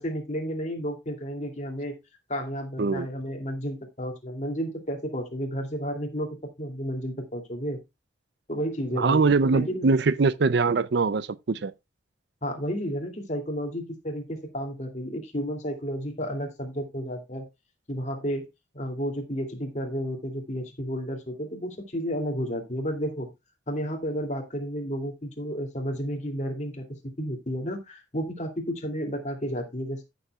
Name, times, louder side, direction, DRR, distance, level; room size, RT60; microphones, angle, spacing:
voice 1, 0.0-2.0 2.3-7.8 8.5-9.2 9.5-9.9 12.4-17.4 17.9-18.4 18.7-23.3 23.7-26.9 27.2-30.0, equal, 40° left, 2.6 m, -32 dB
voice 2, 8.9-11.7, right 4 dB, 60° right, 0.5 m, -23 dB
15.0 x 7.1 x 2.3 m
head